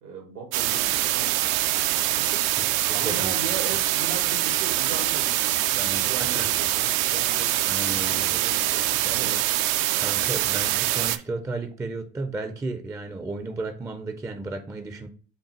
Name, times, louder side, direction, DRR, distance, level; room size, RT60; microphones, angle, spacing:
voice 1, 0.0-2.4 2.9-9.4, right 5 dB, 85° right, 3 dB, 1.7 m, -38 dB
sound 1, 0.5-11.2, right 14 dB, 70° right, 0.5 m, -24 dB
voice 2, 2.9-3.6 5.7-6.5 7.7-8.4 9.2-9.3 10.0-15.1, right 3 dB, 10° right, 7 dB, 0.4 m, -34 dB
5.4 x 2.3 x 4.2 m, 0.40 s
hypercardioid pair, 80°, 43 cm